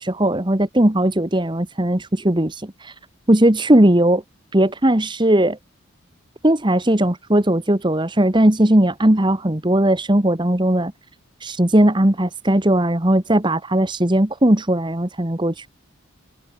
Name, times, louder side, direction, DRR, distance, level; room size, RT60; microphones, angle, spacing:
voice 1, 0.0-2.9 3.3-4.2 4.5-5.6 6.4-10.9 11.4-15.7, right 1 dB, 20° right, 1.4 m, -18 dB
head